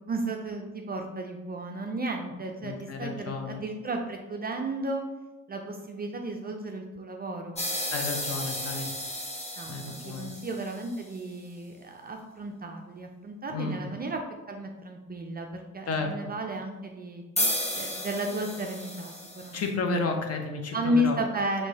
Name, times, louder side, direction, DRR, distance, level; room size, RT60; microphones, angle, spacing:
voice 1, 0.0-5.0 5.5-7.6 9.6-14.2 14.5-17.2 17.7-19.6 20.7-21.7, right 1 dB, 25° right, 2 dB, 0.4 m, -33 dB
voice 2, 2.6-3.6 7.9-8.9 9.7-10.3 13.5-13.8 15.9-16.1 19.5-21.2, left 3 dB, 35° left, 4 dB, 0.8 m, -32 dB
sound 1, 7.5-11.0 17.4-19.7, left 1 dB, 15° left, 1.1 m, -33 dB
6.1 x 3.0 x 2.8 m, 1.1 s
hypercardioid pair, 60°, 41 cm